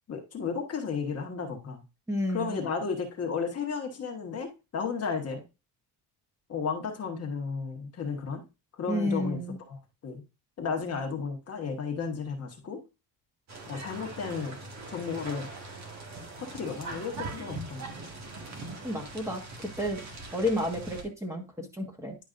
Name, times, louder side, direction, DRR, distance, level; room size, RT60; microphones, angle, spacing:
voice 1, 0.1-1.8 2.3-5.4 6.5-8.4 8.8-9.4 9.7-9.8 10.0-10.2 10.6-12.8 13.7-14.6 14.9-15.5 16.4-17.9, left 5 dB, 40° left, 3 dB, 1.4 m, -33 dB
voice 2, 2.1-2.6 8.9-9.6 18.8-19.4 19.8-20.0 20.3-22.2, left 1 dB, 5° right, 0 dB, 1.5 m, -31 dB
sound 1, 13.5-21.0, right 2 dB, 45° right, 1.8 m, -41 dB
10.5 x 5.2 x 2.6 m, 0.27 s
cardioid pair, 140°, 39 cm